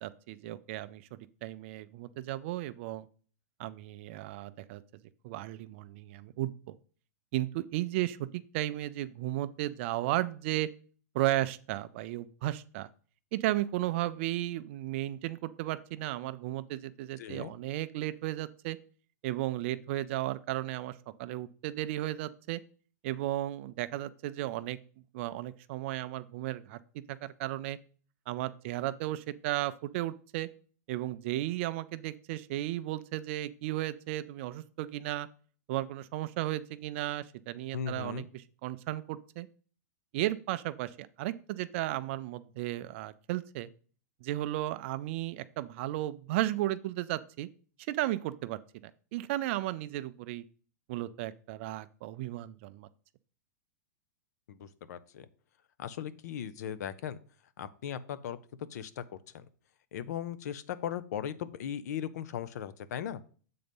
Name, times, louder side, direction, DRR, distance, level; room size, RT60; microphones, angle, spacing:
voice 1, 0.0-3.1 3.6-4.8 5.2-6.7 7.3-10.7 11.1-12.9 13.3-18.8 19.2-22.6 23.0-24.8 25.1-26.8 27.1-27.8 28.3-30.5 30.9-35.3 35.7-39.5 40.1-43.7 44.2-47.5 47.9-50.4 50.9-52.9, right 15 dB, 40° right, 14 dB, 0.4 m, -34 dB
voice 2, 17.2-17.5 37.7-38.3 54.5-55.3 55.8-57.2 57.6-58.4 58.7-59.0 59.9-63.2, left 9 dB, 65° left, 15 dB, 0.6 m, -38 dB
7.6 x 4.0 x 5.3 m, 0.42 s
supercardioid pair, 155°, 10 cm